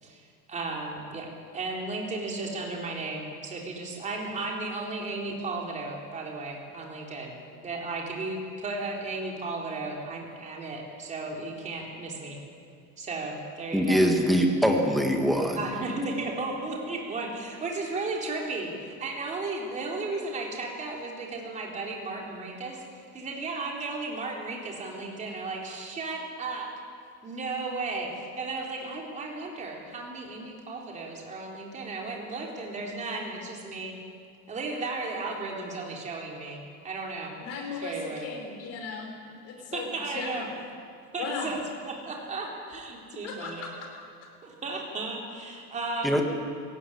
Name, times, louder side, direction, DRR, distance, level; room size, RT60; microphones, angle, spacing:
voice 1, 0.0-7.3 7.6-12.4 13.0-14.0 15.5-26.7 27.2-34.0 34.5-37.3 37.8-38.3 39.7-40.4 41.1-43.7 44.4-46.2, right 3 dB, 20° right, -1 dB, 3.6 m, -35 dB
voice 2, 13.7-15.6 46.0-46.2, equal, ahead, 2 dB, 1.7 m, -23 dB
voice 3, 37.4-39.1 39.4-40.6 41.2-41.5 43.2-44.1, left 4 dB, 40° left, 2 dB, 5.3 m, -37 dB
23.0 x 16.5 x 9.9 m, 2.3 s
cardioid pair, 165°, 37 cm